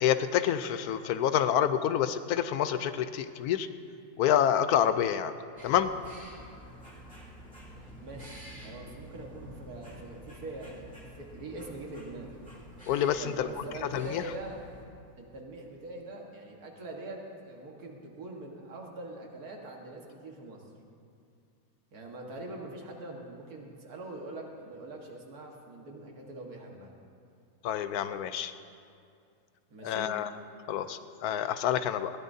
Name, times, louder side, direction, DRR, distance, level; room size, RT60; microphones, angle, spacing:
voice 1, 0.0-3.7 4.2-5.3 5.6-5.9 12.9-13.5 13.9-14.2 27.6-28.5 29.8-30.3 30.7-32.1, left 10 dB, 85° left, 11 dB, 1.1 m, -27 dB
sound 1, 5.6-14.8, equal, 5° left, 2.5 m, -49 dB
voice 2, 7.7-12.4 13.2-14.6 15.2-20.6 21.9-26.9 29.7-30.1, right 2 dB, 80° right, 0 dB, 2.1 m, -43 dB
20.5 x 16.0 x 2.7 m, 2.4 s
omnidirectional pair, 1.6 m